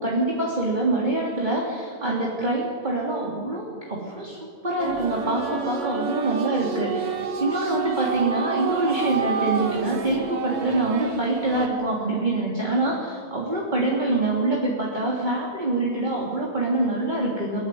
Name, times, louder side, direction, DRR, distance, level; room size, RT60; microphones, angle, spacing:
voice 1, 0.0-17.7, right 2 dB, 10° right, -3 dB, 2.9 m, -25 dB
sound 1, 4.8-11.7, right 5 dB, 55° right, 1.6 m, -29 dB
24.0 x 20.5 x 9.5 m, 2.2 s
omnidirectional pair, 4.9 m